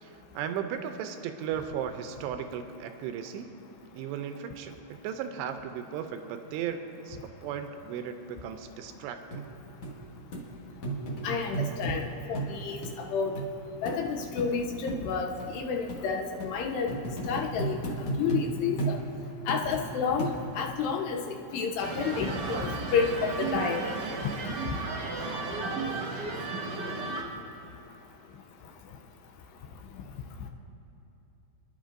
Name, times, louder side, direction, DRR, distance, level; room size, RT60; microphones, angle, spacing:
voice 1, 0.0-3.5 3.9-9.4, right 8 dB, 85° right, 7 dB, 2.7 m, -36 dB
sound 1, 9.3-9.4 9.8-9.9 10.3-10.5 10.8-12.0 12.4-12.5 12.8-12.9 13.4-13.5 13.9-14.0 14.4-14.5 14.9-15.0 15.4-15.5 15.9-16.0 16.4-16.5 16.9-18.5 18.8-19.0 19.5-19.9 20.2-20.6 21.2-21.3, right 3 dB, 65° left, 1.5 m, -33 dB
voice 2, 11.2-13.3 13.8-16.9 17.3-19.0 19.5-23.9, left 5 dB, 80° left, 3 dB, 2.7 m, -30 dB
sound 2, 21.8-27.2, right 3 dB, 60° right, 1.7 m, -34 dB
27.5 x 11.0 x 2.6 m, 2.9 s
omnidirectional pair, 4.9 m